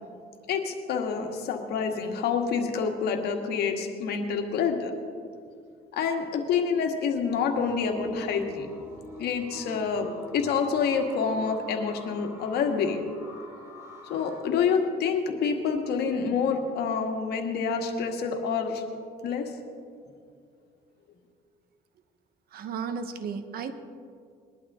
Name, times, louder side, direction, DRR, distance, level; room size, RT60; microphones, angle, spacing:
voice 1, 0.5-4.9 5.9-8.7 9.2-13.0 14.1-18.8 19.2-19.5, left 6 dB, 75° left, 4 dB, 1.7 m, -27 dB
sound 1, 7.5-14.4, equal, 15° right, 3.6 m, -46 dB
voice 2, 22.5-23.7, right 6 dB, 65° right, 9 dB, 1.1 m, -34 dB
20.5 x 11.5 x 3.7 m, 2.2 s
cardioid pair, 110°, 17 cm